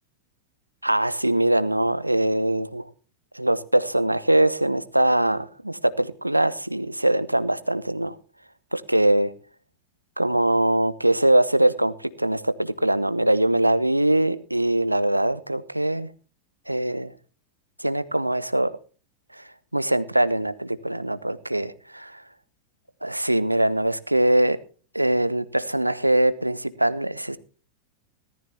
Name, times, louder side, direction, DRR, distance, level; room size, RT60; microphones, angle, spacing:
voice 1, 0.8-2.9 3.3-8.2 8.7-9.3 10.2-16.1 16.7-17.1 17.8-18.7 19.3-22.2 23.0-24.6 24.9-27.4, right 1 dB, 85° right, 16 dB, 0.8 m, -22 dB
18.0 x 13.5 x 2.8 m, 0.38 s
figure-of-eight pair, 90°, 0 cm